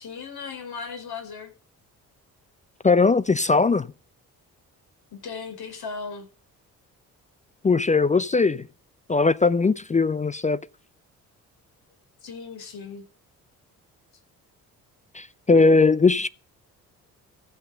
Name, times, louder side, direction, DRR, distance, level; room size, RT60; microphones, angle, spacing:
voice 1, 0.0-1.5 5.1-6.3 12.2-13.0, left 5 dB, 55° left, 5.1 m, -37 dB
voice 2, 2.8-3.9 7.6-8.7 9.1-10.6 15.1-16.3, left 4 dB, 15° left, 0.6 m, -19 dB
15.0 x 7.9 x 6.7 m
figure-of-eight pair, 45°, 45 cm